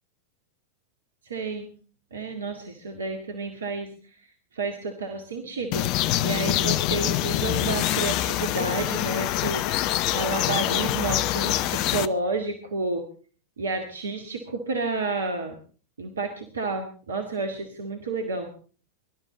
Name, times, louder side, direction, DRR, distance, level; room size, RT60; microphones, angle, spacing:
voice 1, 1.2-1.7 2.1-9.6 10.1-13.0 13.6-15.6 16.0-18.5, right 3 dB, 70° right, 5 dB, 2.0 m, -30 dB
sound 1, 5.7-12.1, left 14 dB, 40° left, 0.7 m, -25 dB
23.5 x 12.5 x 4.0 m, 0.42 s
figure-of-eight pair, 90°, 0 cm